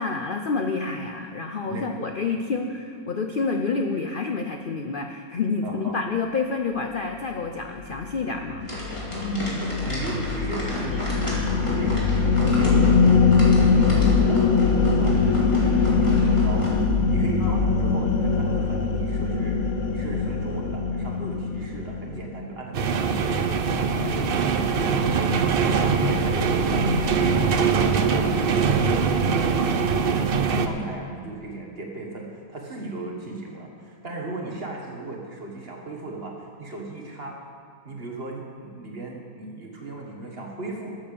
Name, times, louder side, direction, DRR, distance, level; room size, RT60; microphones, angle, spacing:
voice 1, 0.0-8.7 17.4-17.7, left 4 dB, 85° left, 4 dB, 0.4 m, -28 dB
voice 2, 5.6-6.0 9.1-12.1 12.4-13.0 13.6-30.3 30.6-37.4 37.9-41.0, right 2 dB, 35° right, 0 dB, 1.6 m, -36 dB
sound 1, 7.8-22.3, left 4 dB, 55° left, 1.0 m, -22 dB
sound 2, 8.6-16.7, equal, 15° left, 2.6 m, -34 dB
sound 3, 22.7-30.7, right 5 dB, 70° right, 0.5 m, -22 dB
12.5 x 7.8 x 6.8 m, 2.2 s
omnidirectional pair, 1.9 m